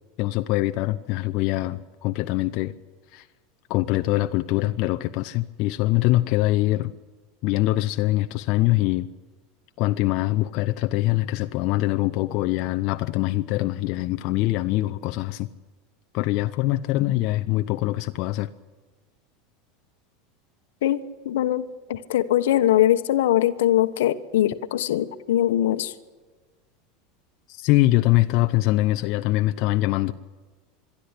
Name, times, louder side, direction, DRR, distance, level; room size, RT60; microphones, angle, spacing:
voice 1, 0.2-2.7 3.1-3.3 3.7-6.9 7.4-9.1 9.8-15.5 16.1-18.5 27.5-30.1, left 17 dB, 55° left, 8 dB, 0.7 m, -23 dB
voice 2, 21.2-21.6 21.9-25.9, left 12 dB, 85° left, 12 dB, 1.1 m, -21 dB
22.5 x 13.5 x 10.0 m, 1.4 s
supercardioid pair, 110°, 0 cm